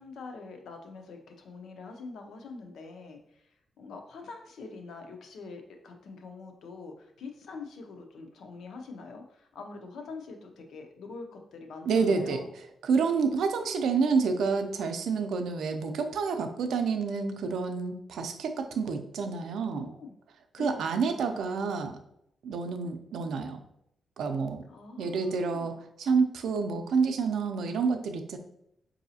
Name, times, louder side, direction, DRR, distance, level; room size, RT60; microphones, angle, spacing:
voice 1, 0.0-12.5 19.6-20.2 20.6-20.8 21.3-21.7 24.7-25.8, left 4 dB, 75° left, 4 dB, 0.6 m, -44 dB
voice 2, 11.9-12.4 12.8-19.9 20.5-22.0 22.4-23.6 24.2-24.6 25.0-28.4, right 5 dB, 80° right, 7 dB, 0.4 m, -28 dB
4.8 x 2.7 x 2.7 m, 0.77 s
wide cardioid pair, 140°, 0 cm